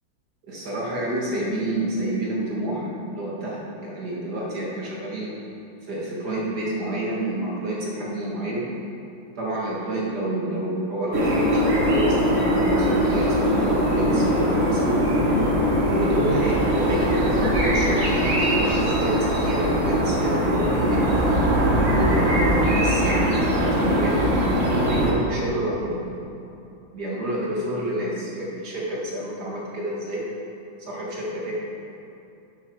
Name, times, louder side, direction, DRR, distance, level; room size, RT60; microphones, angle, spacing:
voice 1, 0.5-5.4 5.8-8.7 9.4-15.0 15.9-21.2 21.9-24.3 24.7-26.1 26.9-30.3 30.8-31.5, right 1 dB, 60° right, -5 dB, 2.5 m, -28 dB
sound 1, 11.1-25.1, equal, 40° right, 1.8 m, -21 dB
11.0 x 7.9 x 4.9 m, 2.8 s
omnidirectional pair, 2.0 m